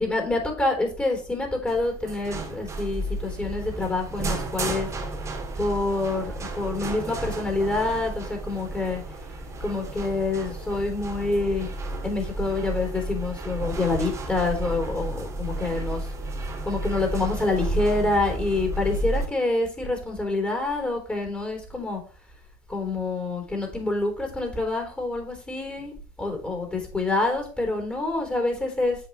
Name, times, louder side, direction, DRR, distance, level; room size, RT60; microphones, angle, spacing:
voice 1, 0.0-4.9 5.6-9.0 9.6-11.7 12.0-16.0 16.6-22.0 22.7-25.9 26.2-29.0, left 2 dB, 15° left, 2 dB, 3.6 m, -27 dB
sound 1, 1.7-19.2, right 2 dB, 30° right, 1.9 m, -32 dB
8.2 x 5.0 x 3.1 m, 0.36 s
hypercardioid pair, 85°, 10 cm